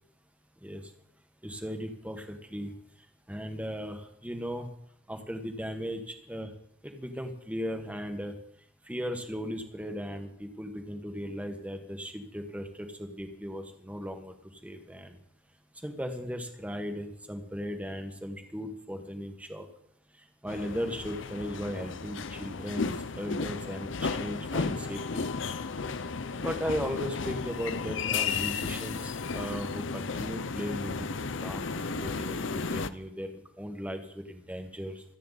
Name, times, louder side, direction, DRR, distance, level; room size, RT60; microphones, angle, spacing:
voice 1, 1.4-2.7 3.3-4.7 5.1-6.5 6.8-8.3 8.8-14.3 14.6-15.2 15.8-19.7 20.4-25.3 26.4-31.1 31.4-33.3 33.6-35.0, equal, 5° right, 5 dB, 1.6 m, -37 dB
sound 1, 20.5-32.9, left 4 dB, 65° left, 0.7 m, -34 dB
25.5 x 9.2 x 4.1 m, 0.72 s
head